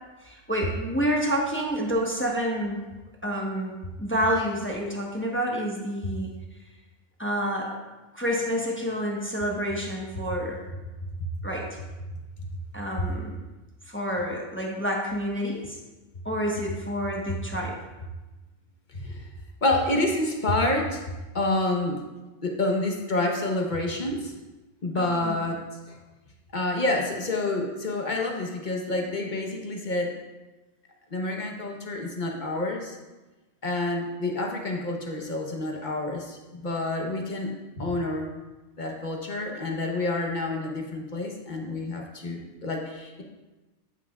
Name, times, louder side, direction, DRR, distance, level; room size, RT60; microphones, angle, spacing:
voice 1, 0.2-2.8 3.2-6.3 7.2-7.7 8.1-10.6 11.4-11.8 12.7-13.4 13.9-15.8 16.2-17.8 24.9-25.4, equal, 10° left, -2 dB, 1.0 m, -28 dB
voice 2, 18.9-19.3 19.6-21.0 21.3-22.0 22.4-24.3 24.8-25.6 25.9-26.0 26.5-30.2 31.1-33.0 33.6-38.3 38.8-43.2, left 2 dB, 45° left, 1 dB, 1.0 m, -28 dB
13.5 x 5.8 x 2.3 m, 1.1 s
omnidirectional pair, 1.2 m